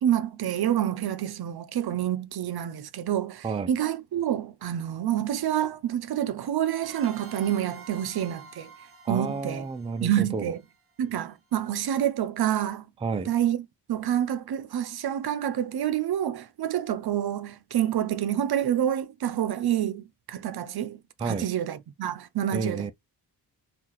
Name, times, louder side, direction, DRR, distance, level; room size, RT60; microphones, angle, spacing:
voice 1, 0.0-8.7 9.1-9.7 10.0-10.6 11.0-12.9 13.3-22.9, right 10 dB, 65° right, 0.5 m, -28 dB
sound 1, 6.8-11.3, right 4 dB, 35° right, 0.8 m, -49 dB
voice 2, 9.0-10.5 13.0-13.3 21.2-21.5 22.5-22.9, right 4 dB, 15° right, 0.3 m, -30 dB
3.8 x 2.4 x 2.9 m
wide cardioid pair, 95°, 41 cm